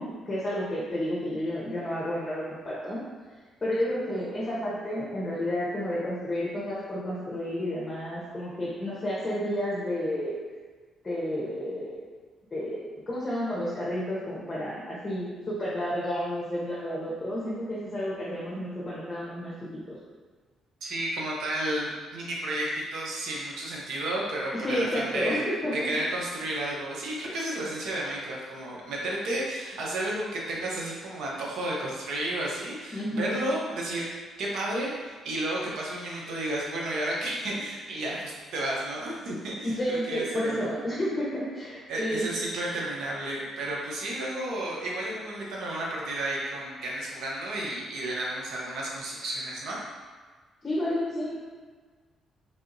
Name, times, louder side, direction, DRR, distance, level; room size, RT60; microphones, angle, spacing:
voice 1, 0.0-3.0 3.6-10.4 11.0-12.1 12.5-20.0 24.5-25.7 27.2-27.3 32.9-33.4 39.6-42.3 50.6-51.3, equal, 30° left, -7 dB, 0.9 m, -31 dB
voice 2, 20.8-25.4 25.7-34.1 34.4-40.7 41.9-49.8, right 1 dB, 75° right, -3 dB, 0.7 m, -32 dB
3.4 x 2.7 x 2.6 m, 1.4 s
cardioid pair, 90°, 0 cm